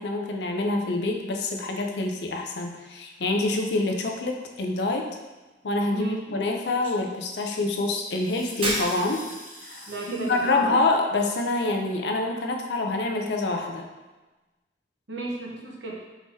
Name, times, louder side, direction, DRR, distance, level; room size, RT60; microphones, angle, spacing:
voice 1, 0.0-5.1 5.6-9.2 9.6-9.9 10.2-13.9, left 2 dB, 70° left, 3 dB, 0.5 m, -26 dB
sound 1, 2.9-3.3 6.8-6.9 8.2-10.6, equal, 10° left, 1.1 m, -44 dB
voice 2, 5.9-6.4 9.9-10.8 15.1-16.0, right 2 dB, 85° right, -2 dB, 0.9 m, -34 dB
Shatter, 8.6-9.4, right 1 dB, 30° right, 0.7 m, -29 dB
4.7 x 3.6 x 2.7 m, 1.2 s
head